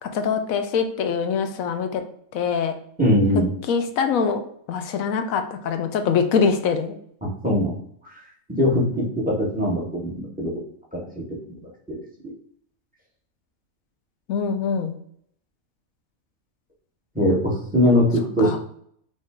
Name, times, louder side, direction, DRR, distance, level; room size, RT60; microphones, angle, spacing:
voice 1, 0.0-2.0 2.3-2.7 3.7-4.4 4.7-7.0 14.3-14.9 18.4-18.6, left 6 dB, 80° left, 7 dB, 1.0 m, -23 dB
voice 2, 3.0-3.5 7.2-7.7 8.0-8.1 8.6-8.8 9.3-10.6 11.5-11.6 11.9-12.0 17.1-18.6, left 1 dB, 5° right, -3 dB, 1.4 m, -21 dB
5.4 x 2.6 x 3.6 m, 0.66 s
omnidirectional pair, 1.5 m